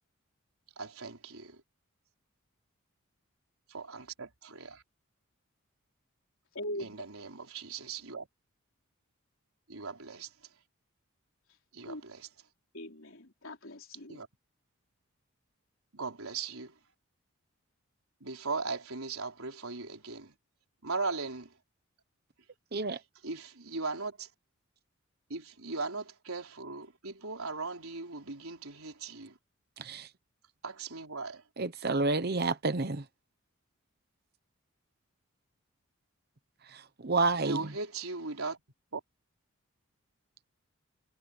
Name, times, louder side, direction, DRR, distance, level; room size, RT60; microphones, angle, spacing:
voice 1, 0.8-1.6 3.7-4.8 6.8-7.3 7.5-8.3 9.7-10.3 11.7-12.3 14.1-14.3 15.9-16.7 18.2-20.3 20.8-21.5 23.2-24.3 25.3-29.4 30.6-31.4 37.4-38.6 38.9-39.0, right 4 dB, 85° right, 4.1 m, -38 dB
voice 2, 6.5-7.0 11.8-12.0 12.7-14.2, left 1 dB, 65° left, 4.2 m, -41 dB
voice 3, 22.7-23.0 29.8-30.1 31.6-33.1 36.6-37.7, right 3 dB, 45° right, 1.0 m, -30 dB
head